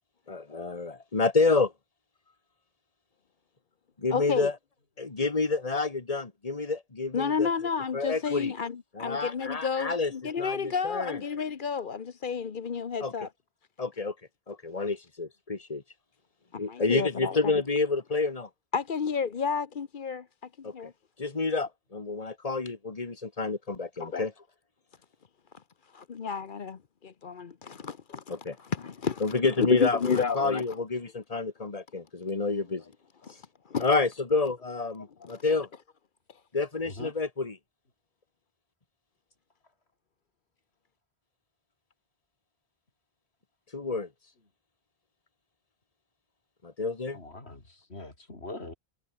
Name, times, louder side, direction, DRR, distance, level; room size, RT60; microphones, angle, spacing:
voice 1, 0.3-1.7 4.0-4.5 5.0-7.5 7.9-8.5 9.0-10.1 10.4-11.2 13.0-13.1 13.8-14.1 14.5-15.8 16.6-18.5 20.6-20.7 21.2-24.3 28.3-28.5 29.2-32.8 33.8-35.7 36.5-37.6 43.7-44.1 46.6-47.2, left 3 dB, 35° left, 2.0 m, -29 dB
voice 2, 4.1-4.5 7.1-13.3 16.5-17.5 18.7-20.3 20.6-20.9 24.0-24.2 25.8-30.6 33.2-33.3 33.7-33.9 35.2-35.4 36.3-36.4, left 6 dB, 55° left, 1.1 m, -31 dB
voice 3, 47.1-48.7, left 2 dB, 90° left, 4.4 m, -42 dB
omnidirectional pair, 1.1 m